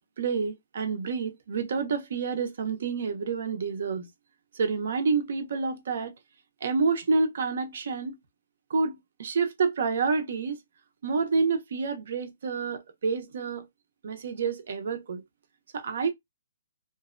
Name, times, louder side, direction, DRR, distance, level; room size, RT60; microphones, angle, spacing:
voice 1, 0.2-4.1 4.5-6.1 6.6-8.2 8.7-10.6 11.0-13.7 14.0-15.2 15.7-16.1, right 4 dB, 60° right, 0.6 m, -28 dB
2.6 x 2.1 x 2.4 m
hypercardioid pair, 170°, 0 cm